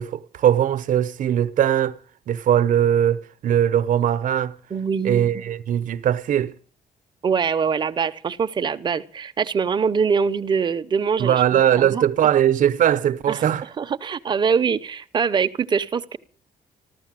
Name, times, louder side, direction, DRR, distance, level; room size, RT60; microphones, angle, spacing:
voice 1, 0.0-2.0 2.3-4.5 5.0-6.5 11.2-13.7, right 10 dB, 55° right, 0.9 m, -20 dB
voice 2, 4.7-5.3 7.2-12.0 13.3-13.4 13.8-16.2, right 6 dB, 30° right, 0.8 m, -23 dB
15.0 x 13.0 x 7.5 m
cardioid pair, 180°, 16 cm